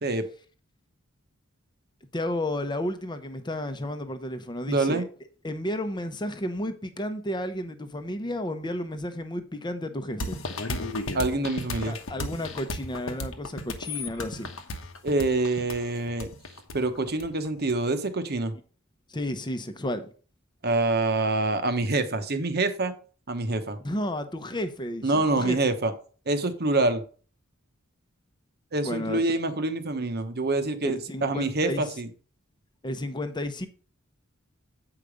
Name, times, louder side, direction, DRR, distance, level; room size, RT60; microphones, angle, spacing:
voice 1, 2.1-5.0 5.4-10.4 11.9-14.5 19.1-20.1 23.8-25.6 28.8-29.2 30.8-31.8 32.8-33.7, left 1 dB, 20° left, 0.9 m, -32 dB
voice 2, 4.7-5.1 11.1-12.0 15.0-16.3 16.7-18.5 20.6-22.9 23.3-23.8 25.0-25.9 26.3-27.0 28.7-32.1, right 2 dB, 50° right, 1.1 m, -26 dB
sound 1, 10.2-17.7, left 2 dB, 75° left, 1.1 m, -34 dB
8.3 x 5.0 x 5.1 m
head